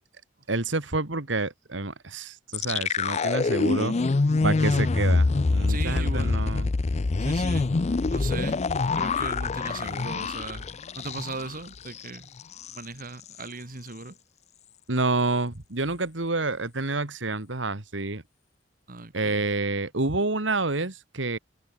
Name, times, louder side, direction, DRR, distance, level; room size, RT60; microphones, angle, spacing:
voice 1, 0.5-4.0 4.4-6.7 14.9-18.2 19.1-21.4, right 2 dB, 70° right, 2.2 m, -28 dB
sound 1, 2.5-11.6 11.9-12.0 12.4-12.8, left 3 dB, 35° left, 0.5 m, -25 dB
voice 2, 5.7-6.5 7.2-7.8 8.1-10.6 11.0-12.3 12.7-14.2 18.9-19.4, right 3 dB, 45° right, 2.1 m, -37 dB
head